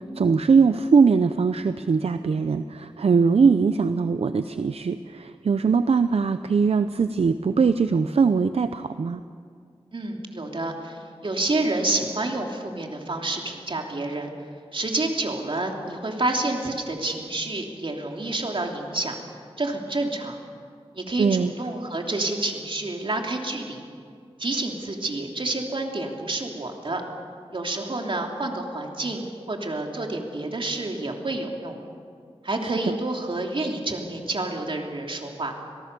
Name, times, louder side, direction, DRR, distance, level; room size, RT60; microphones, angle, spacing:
voice 1, 0.0-9.2 21.2-21.5 32.6-32.9, right 5 dB, 80° right, 11 dB, 0.6 m, -21 dB
voice 2, 9.9-14.3 14.7-19.1 19.6-20.4 20.9-23.8 24.4-27.0 27.5-31.8 32.4-35.5, right 2 dB, 55° right, 1 dB, 3.1 m, -29 dB
26.0 x 18.5 x 6.9 m, 2.2 s
wide cardioid pair, 65°, 10 cm